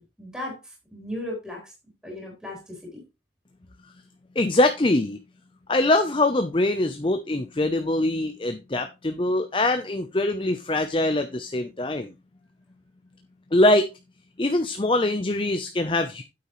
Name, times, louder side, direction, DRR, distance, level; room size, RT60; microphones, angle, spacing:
voice 1, 0.2-1.7 2.0-3.0, left 1 dB, 5° right, -2 dB, 3.8 m, -36 dB
voice 2, 4.4-5.2 5.7-12.1 13.5-13.9 14.4-16.2, left 2 dB, 30° left, 8 dB, 0.6 m, -23 dB
9.7 x 8.6 x 3.1 m, 0.26 s
head